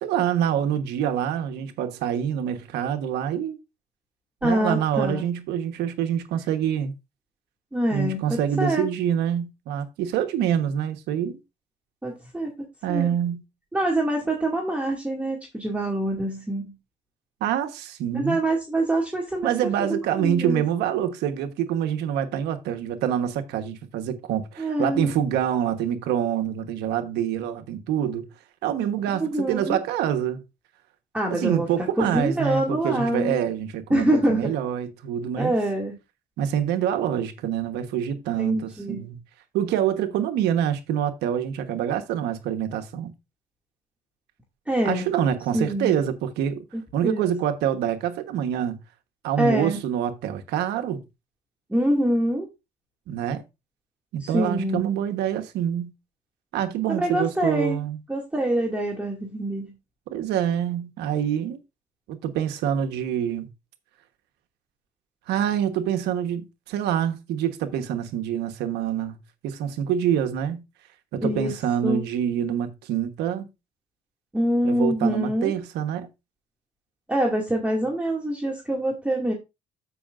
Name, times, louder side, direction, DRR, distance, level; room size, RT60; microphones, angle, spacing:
voice 1, 0.0-3.6 4.4-6.9 7.9-11.4 12.8-13.4 17.4-18.4 19.4-28.3 28.6-30.4 31.3-35.5 36.4-39.2 39.5-43.1 44.8-46.6 46.9-48.8 49.2-51.0 53.1-53.4 54.1-55.9 56.5-58.0 60.1-61.6 62.1-63.5 65.3-69.2 69.4-70.6 71.1-73.5 74.6-76.1, right 9 dB, 85° right, 1.2 m, -26 dB
voice 2, 4.4-5.2 7.7-8.9 12.0-12.5 12.9-13.1 13.7-16.7 18.1-19.5 19.8-20.6 24.6-25.1 29.2-29.8 31.1-33.4 33.9-34.5 35.4-36.0 38.4-39.0 44.7-45.1 45.5-46.0 46.7-47.3 49.4-49.8 51.7-52.5 54.2-54.8 56.9-57.8 58.1-59.7 71.2-71.5 71.8-72.0 74.3-75.5 77.1-79.3, right 1 dB, 10° right, 2.2 m, -25 dB
13.0 x 5.8 x 2.5 m
cardioid pair, 110°, 17 cm